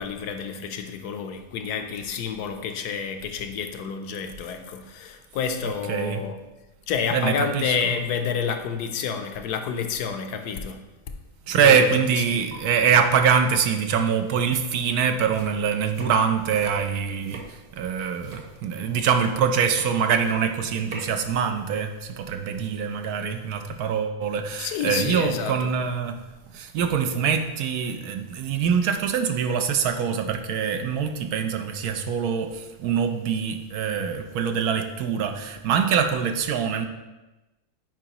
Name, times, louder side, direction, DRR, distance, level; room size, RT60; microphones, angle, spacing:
voice 1, 0.0-6.4 6.9-10.8 11.5-12.4 24.6-25.7 26.8-26.9, left 6 dB, 75° left, 7 dB, 1.2 m, -29 dB
voice 2, 5.9-6.2 7.1-7.9 11.5-26.2 26.5-36.9, right 7 dB, 70° right, 6 dB, 1.0 m, -24 dB
sound 1, 12.5-12.6 14.2-14.3 14.6-21.2, right 2 dB, 55° right, 1.6 m, -44 dB
9.2 x 5.0 x 2.9 m, 1.1 s
omnidirectional pair, 1.8 m